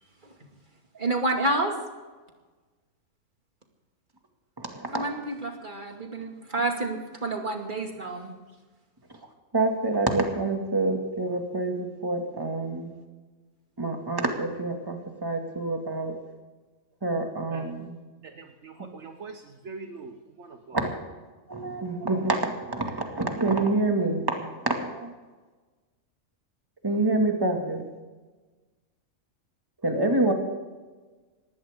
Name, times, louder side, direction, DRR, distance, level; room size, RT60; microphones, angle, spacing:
voice 1, 0.9-1.8 4.9-8.4, right 2 dB, 35° right, 3 dB, 2.4 m, -29 dB
voice 2, 4.6-5.1 9.5-12.9 13.8-16.1 17.0-18.0 20.7-21.0 21.5-25.1 26.8-27.8 29.8-30.3, right 2 dB, 15° right, 2 dB, 2.2 m, -27 dB
voice 3, 18.2-20.8, right 4 dB, 60° right, 5 dB, 1.4 m, -43 dB
20.0 x 16.0 x 3.7 m, 1.3 s
omnidirectional pair, 1.3 m